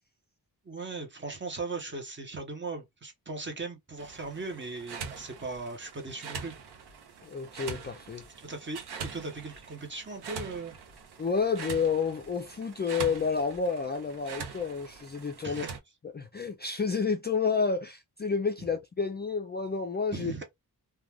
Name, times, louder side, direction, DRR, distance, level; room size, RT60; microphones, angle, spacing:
voice 1, 0.6-6.5 8.4-10.8 15.4-15.7 20.1-20.4, right 3 dB, 30° right, 0.8 m, -38 dB
sound 1, 4.0-15.8, right 5 dB, 90° right, 0.7 m, -43 dB
voice 2, 7.2-8.2 11.2-15.7 16.1-20.3, left 5 dB, 30° left, 0.3 m, -30 dB
2.4 x 2.3 x 3.2 m
wide cardioid pair, 115°, 38 cm